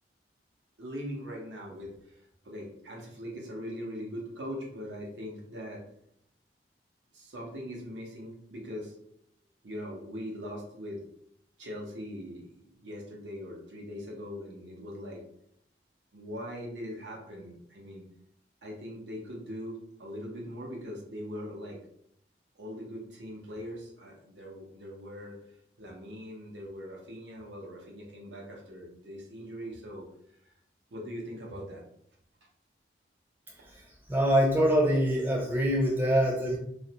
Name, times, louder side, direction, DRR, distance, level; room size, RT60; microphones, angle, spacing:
voice 1, 0.8-5.8 7.1-8.9 9.6-11.0 11.6-15.2 16.1-18.0 18.6-21.8 22.6-25.4 25.8-30.0 30.9-31.8, equal, 80° right, -2 dB, 0.7 m, -41 dB
voice 2, 34.1-36.6, equal, 10° right, -2 dB, 0.5 m, -24 dB
2.4 x 2.1 x 2.8 m, 0.71 s
head